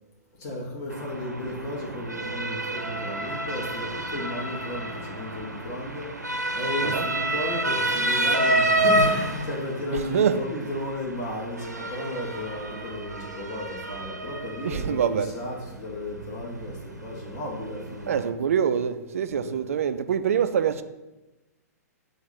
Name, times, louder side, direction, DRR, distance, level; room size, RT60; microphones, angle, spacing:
voice 1, 0.4-18.3 19.3-19.6, left 1 dB, 35° left, 1.6 m, -34 dB
Motor vehicle (road) / Siren, 0.9-18.3, right 1 dB, 85° right, 0.7 m, -29 dB
voice 2, 14.6-15.3 18.1-20.8, right 8 dB, 55° right, 0.4 m, -25 dB
7.7 x 2.6 x 5.9 m
figure-of-eight pair, 110°, 9 cm